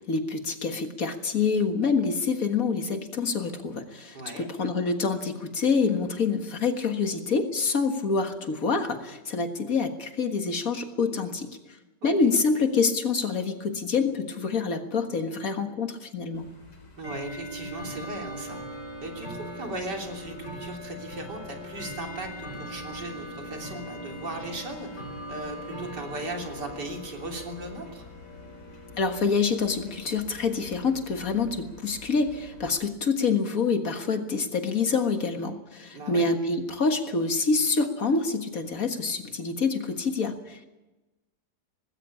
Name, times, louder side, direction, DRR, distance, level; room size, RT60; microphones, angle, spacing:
voice 1, 0.1-11.5 12.0-16.5 28.9-40.7, left 4 dB, 55° left, 6 dB, 2.0 m, -26 dB
voice 2, 4.1-4.5 12.0-12.1 16.4-16.5 17.0-18.6 19.0-25.0 25.3-28.0 35.9-36.3, right 2 dB, 80° right, 2 dB, 3.9 m, -37 dB
Bell / Tick-tock, 16.3-32.7, equal, 75° left, 4.9 m, -41 dB
19.5 x 16.5 x 8.5 m, 1.1 s
omnidirectional pair, 1.8 m